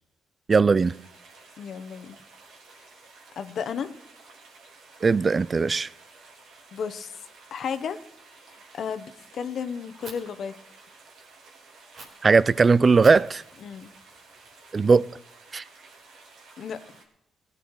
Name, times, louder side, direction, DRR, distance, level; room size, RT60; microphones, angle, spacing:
voice 1, 0.5-0.9 5.0-5.9 12.2-13.4 14.7-15.0 15.5-15.6, right 4 dB, 35° right, 0.4 m, -19 dB
sound 1, 0.8-17.0, right 3 dB, 80° right, 3.3 m, -52 dB
voice 2, 1.6-2.2 3.4-3.9 6.7-7.1 7.5-8.0 8.7-10.5 13.6-13.9 16.6-16.8, left 7 dB, 60° left, 1.1 m, -33 dB
Fire, 10.0-10.1 11.9-12.0 13.0-15.0, right 3 dB, 60° right, 3.8 m, -47 dB
17.0 x 9.4 x 4.8 m
cardioid pair, 90°, 0 cm